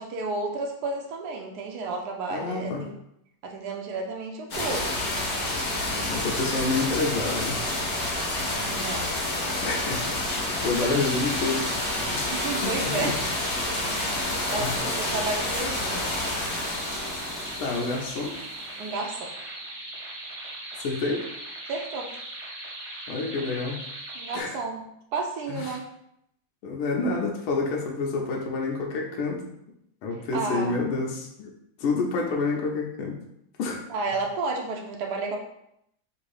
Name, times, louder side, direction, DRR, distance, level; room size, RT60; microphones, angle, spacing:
voice 1, 0.0-3.0 3.4-5.0 8.7-9.2 10.6-10.9 12.3-13.2 13.7-16.2 18.8-19.3 21.7-22.1 24.1-24.8 25.1-25.8 30.3-31.0 33.9-35.4, right 3 dB, 70° right, 1 dB, 0.9 m, -32 dB
voice 2, 2.3-2.8 5.8-7.6 9.6-10.2 10.5-12.2 12.6-13.1 14.6-14.7 17.6-18.3 20.8-21.3 23.1-23.8 24.3-24.6 25.5-25.8 26.6-29.4 30.0-31.5 31.8-33.2 33.6-33.8, left 3 dB, 85° left, -1 dB, 1.6 m, -28 dB
sound 1, 4.5-18.8, left 1 dB, 55° left, 1.3 m, -29 dB
sound 2, 10.7-24.4, right 1 dB, 55° right, 1.6 m, -39 dB
3.9 x 2.6 x 4.7 m, 0.77 s
omnidirectional pair, 2.3 m